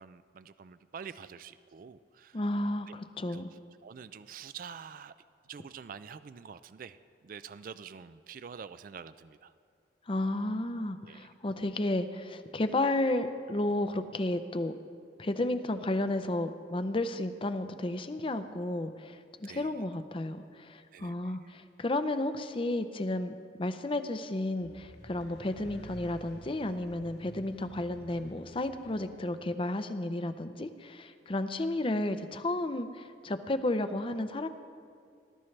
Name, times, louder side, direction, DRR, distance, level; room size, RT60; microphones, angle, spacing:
voice 1, 0.0-2.4 2.9-3.0 3.3-3.4 3.8-5.1 5.4-7.0 7.2-9.5 11.0-11.3 19.4-19.8 20.9-21.4, right 6 dB, 50° right, 14 dB, 0.3 m, -46 dB
voice 2, 2.3-3.5 10.1-14.7 15.2-34.5, left 1 dB, 30° left, 10 dB, 0.6 m, -32 dB
sound 1, 24.6-29.2, equal, 75° left, 2.9 m, -51 dB
20.0 x 12.5 x 3.3 m, 2.3 s
head